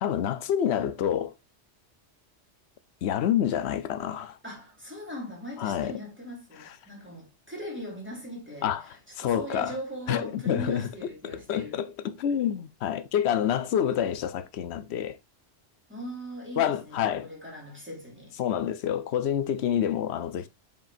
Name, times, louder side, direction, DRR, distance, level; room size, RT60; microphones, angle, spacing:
voice 1, 0.0-1.3 3.0-4.4 5.6-6.0 8.6-9.7 10.1-10.9 11.2-15.2 16.6-17.3 18.4-20.5, left 9 dB, 65° left, 0.9 m, -28 dB
voice 2, 4.4-11.8 15.9-18.3, equal, 10° right, 3.0 m, -40 dB
7.5 x 5.3 x 2.5 m
omnidirectional pair, 1.2 m